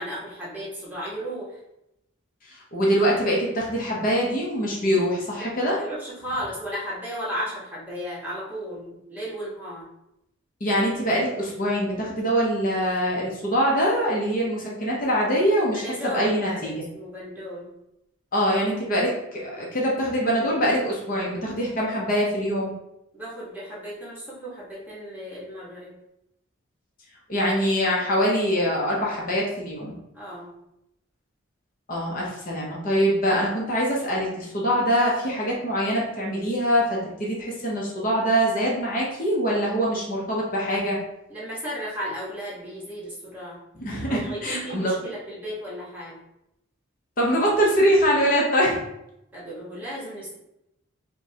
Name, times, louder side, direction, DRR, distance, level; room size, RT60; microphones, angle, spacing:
voice 1, 0.0-1.6 5.3-9.8 15.7-17.7 23.1-25.9 30.1-30.5 41.3-43.6 44.1-46.2 49.3-50.3, equal, 10° right, -8 dB, 1.2 m, -35 dB
voice 2, 2.4-5.8 10.6-16.8 18.3-22.7 27.3-30.0 31.9-41.0 43.7-44.9 47.2-48.8, equal, 40° left, -3 dB, 0.8 m, -24 dB
5.1 x 2.3 x 2.8 m, 0.83 s
head